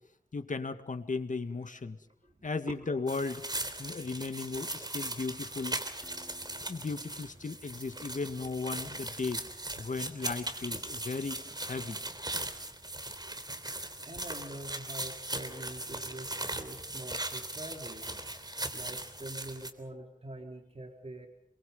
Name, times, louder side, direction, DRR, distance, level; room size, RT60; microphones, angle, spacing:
voice 1, 0.3-2.0 2.4-3.4 3.8-5.8 6.7-9.4 9.8-12.0, left 4 dB, 70° left, 8 dB, 1.9 m, -36 dB
voice 2, 2.2-2.7 4.5-4.8 6.3-6.4 14.1-21.3, right 1 dB, 45° right, 2 dB, 3.6 m, -45 dB
sound 1, 3.1-19.7, right 1 dB, 30° right, 3.2 m, -39 dB
Acoustic guitar, 6.0-9.0, left 1 dB, 10° left, 4.8 m, -60 dB
28.0 x 23.0 x 5.5 m, 0.67 s
wide cardioid pair, 65°, 14 cm